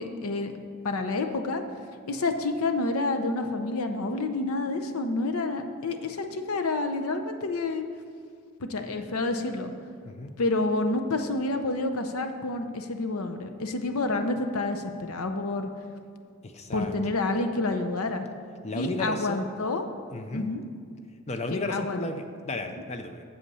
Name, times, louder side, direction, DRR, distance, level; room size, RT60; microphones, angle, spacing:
voice 1, 0.0-1.6 2.1-7.8 8.6-9.7 10.4-15.7 16.7-18.3 18.7-19.8 20.3-20.6 21.5-22.0, left 2 dB, 80° left, 7 dB, 0.7 m, -29 dB
voice 2, 10.0-10.3 16.4-16.9 18.6-19.5 20.1-20.5 21.3-23.2, left 2 dB, 30° left, 7 dB, 0.6 m, -33 dB
8.3 x 7.1 x 5.5 m, 2.2 s
head